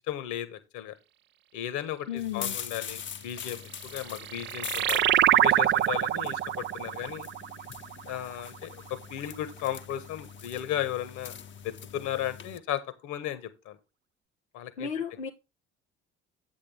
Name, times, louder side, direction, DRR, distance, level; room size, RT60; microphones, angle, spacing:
voice 1, 0.1-1.0 1.5-7.3 8.0-11.4 11.6-13.8 14.5-14.9, left 11 dB, 60° left, 1.5 m, -35 dB
voice 2, 2.1-2.6 14.8-15.3, left 8 dB, 90° left, 0.7 m, -33 dB
sound 1, 2.2-12.6, left 8 dB, 35° left, 0.8 m, -43 dB
sound 2, 3.8-8.9, right 12 dB, 35° right, 0.4 m, -26 dB
8.5 x 7.9 x 3.4 m
figure-of-eight pair, 50°, 34 cm